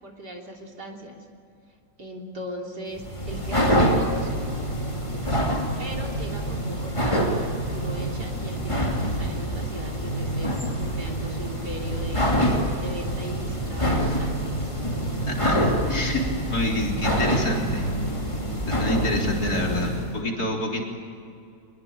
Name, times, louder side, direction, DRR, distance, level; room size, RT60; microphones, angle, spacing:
voice 1, 0.0-1.2 2.0-4.4 5.8-12.3 12.8-14.7, equal, 70° right, 1 dB, 3.8 m, -38 dB
sound 1, 2.9-20.1, equal, 15° left, 3.0 m, -26 dB
voice 2, 15.3-16.3 16.5-17.9 18.7-20.8, left 1 dB, 60° left, 0 dB, 4.2 m, -27 dB
23.5 x 21.5 x 8.8 m, 2.5 s
omnidirectional pair, 1.9 m